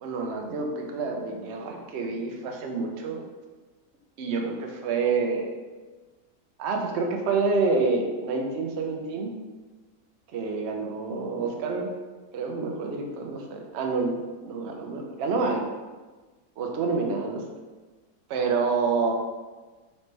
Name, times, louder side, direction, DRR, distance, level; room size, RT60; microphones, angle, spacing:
voice 1, 0.0-3.3 4.2-5.5 6.6-9.4 10.3-11.9 12.3-15.7 16.6-17.4 18.3-19.1, right 4 dB, 75° right, 2 dB, 0.6 m, -28 dB
4.3 x 3.1 x 3.2 m, 1.3 s
omnidirectional pair, 1.8 m